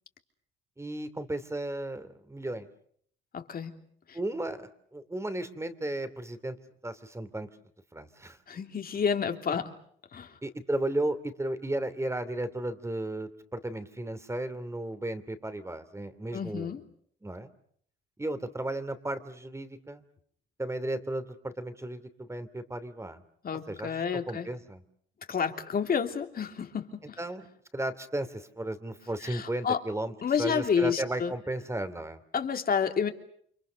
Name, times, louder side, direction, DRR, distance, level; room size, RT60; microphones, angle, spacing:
voice 1, 0.8-2.7 4.1-6.6 6.8-7.5 7.9-8.4 10.4-16.7 17.2-17.5 18.2-20.0 20.6-23.2 23.7-24.8 27.2-27.5 27.7-32.2, right 1 dB, 15° right, 12 dB, 2.9 m, -34 dB
voice 2, 3.3-3.8 4.1-4.2 8.5-9.7 10.1-10.4 16.3-16.8 23.4-24.5 25.3-27.2 29.2-29.8 30.2-31.3 32.3-33.1, left 6 dB, 50° left, 5 dB, 3.1 m, -30 dB
30.0 x 25.5 x 6.6 m, 0.64 s
cardioid pair, 90°, 20 cm